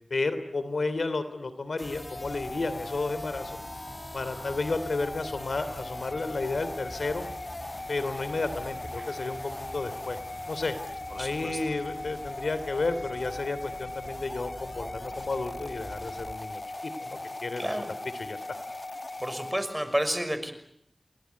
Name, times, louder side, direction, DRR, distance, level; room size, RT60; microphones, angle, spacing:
voice 1, 0.1-3.6 4.1-7.2 7.9-10.2 10.5-10.8 11.2-17.8 18.1-18.4, left 3 dB, 90° left, 12 dB, 2.9 m, -32 dB
sound 1, 1.8-20.0, left 2 dB, 40° left, 1.3 m, -39 dB
sound 2, 1.8-16.3, right 1 dB, 35° right, 6.6 m, -47 dB
voice 2, 11.1-11.6 17.6-17.8 19.2-20.5, equal, 10° right, 9 dB, 5.8 m, -30 dB
29.5 x 20.5 x 9.5 m, 0.71 s
wide cardioid pair, 50°, 0 cm